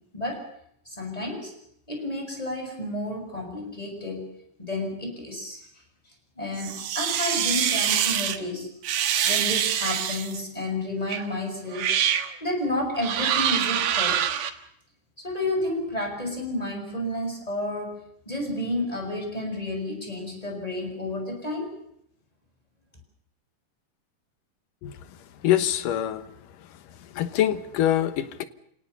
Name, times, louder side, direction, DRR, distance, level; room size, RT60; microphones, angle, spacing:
voice 1, 0.1-0.5 0.8-1.5 1.9-4.3 4.6-5.6 6.4-8.7 9.2-12.0 12.4-14.3 15.2-21.8, left 1 dB, 10° left, 6.6 m, -31 dB
sound 1, 6.6-8.4 8.8-10.4 11.1-11.3 11.7-12.3 13.0-14.5, right 9 dB, 85° right, 3.2 m, -25 dB
voice 2, 25.4-26.3 27.1-28.4, left 11 dB, 90° left, 2.9 m, -24 dB
29.0 x 18.5 x 6.9 m
omnidirectional pair, 3.7 m